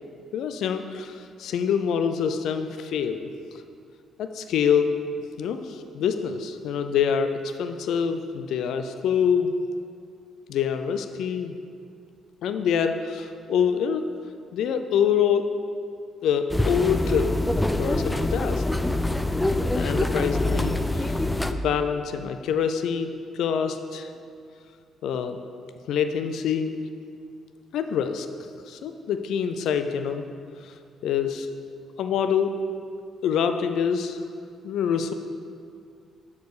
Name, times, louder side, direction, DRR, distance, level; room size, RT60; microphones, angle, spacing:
voice 1, 0.3-3.3 4.2-4.9 5.4-9.5 10.5-11.5 12.4-14.0 14.5-15.5 16.2-17.4 17.8-18.6 19.7-21.2 21.5-24.1 25.0-25.4 25.9-26.7 27.7-28.3 28.7-30.3 30.6-30.7 31.0-31.5 32.0-32.5 33.2-34.2 34.6-35.1, left 7 dB, 80° left, 8 dB, 0.4 m, -25 dB
sound 1, 16.5-21.5, left 1 dB, 5° left, 0.3 m, -25 dB
6.6 x 4.7 x 4.9 m, 2.3 s
cardioid pair, 90°, 0 cm